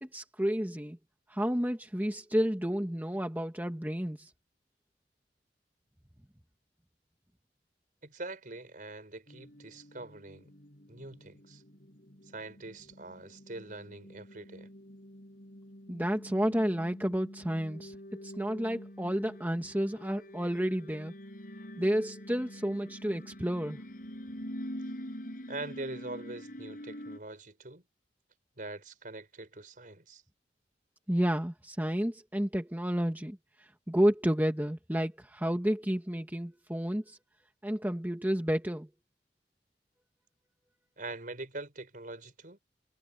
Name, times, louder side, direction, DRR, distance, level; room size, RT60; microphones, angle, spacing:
voice 1, 0.0-1.0 1.3-4.3 15.9-18.0 18.2-21.1 21.8-23.8 31.1-37.2 37.6-38.9, equal, 10° right, 1.5 m, -31 dB
voice 2, 8.0-10.5 10.9-11.6 12.3-14.7 25.5-27.8 28.6-30.2 41.0-42.6, right 2 dB, 50° right, 4.8 m, -43 dB
sound 1, 9.3-27.2, equal, 55° left, 6.4 m, -46 dB
head